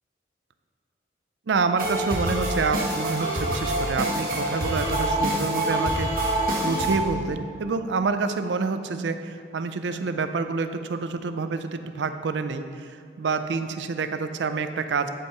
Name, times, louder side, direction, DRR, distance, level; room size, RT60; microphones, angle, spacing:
voice 1, 1.5-6.1 6.6-15.1, right 4 dB, 80° right, 9 dB, 0.5 m, -27 dB
sound 1, 1.8-7.0, right 1 dB, 55° right, 1.4 m, -26 dB
10.5 x 4.6 x 4.5 m, 2.1 s
head